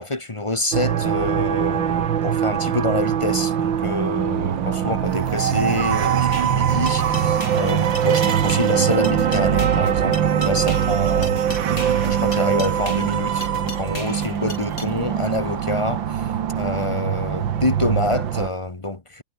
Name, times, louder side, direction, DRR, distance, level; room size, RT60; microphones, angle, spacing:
voice 1, 0.0-11.4 12.0-19.2, left 2 dB, 20° left, 1.0 m, -27 dB
sound 1, 0.7-18.5, right 9 dB, 65° right, 2.0 m, -22 dB
sound 2, 6.3-14.9, left 2 dB, 40° left, 8.1 m, -36 dB
omnidirectional pair, 2.3 m